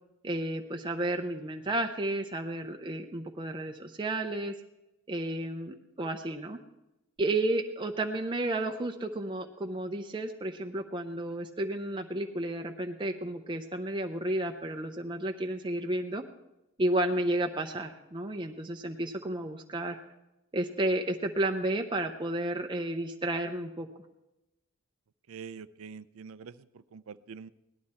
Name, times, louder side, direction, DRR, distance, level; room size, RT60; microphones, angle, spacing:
voice 1, 0.2-4.5 5.1-6.6 7.2-16.2 16.8-20.0 20.5-23.9, right 1 dB, 25° right, 3 dB, 0.6 m, -32 dB
voice 2, 25.3-27.5, right 6 dB, 85° right, 16 dB, 0.5 m, -45 dB
17.5 x 11.5 x 4.3 m, 0.92 s
head